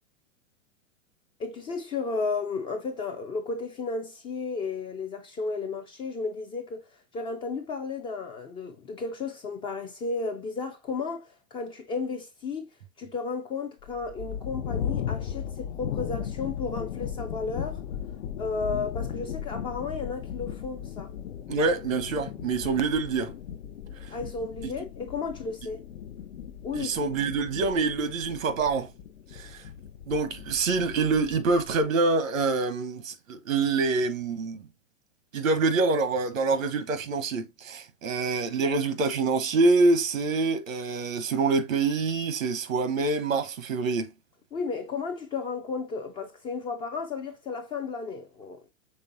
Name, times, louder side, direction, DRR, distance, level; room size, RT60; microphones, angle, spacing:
voice 1, 1.4-6.8 7.1-12.7 13.0-17.8 18.4-21.1 24.1-25.8 26.6-26.9 44.5-48.6, left 4 dB, 15° left, 0.3 m, -33 dB
sound 1, 13.8-31.9, left 9 dB, 75° left, 0.7 m, -37 dB
voice 2, 21.5-23.3 26.7-28.9 29.3-29.6 30.1-34.6 35.3-44.1, right 3 dB, 85° right, 1.0 m, -26 dB
5.5 x 3.3 x 2.5 m
hypercardioid pair, 110°, 39 cm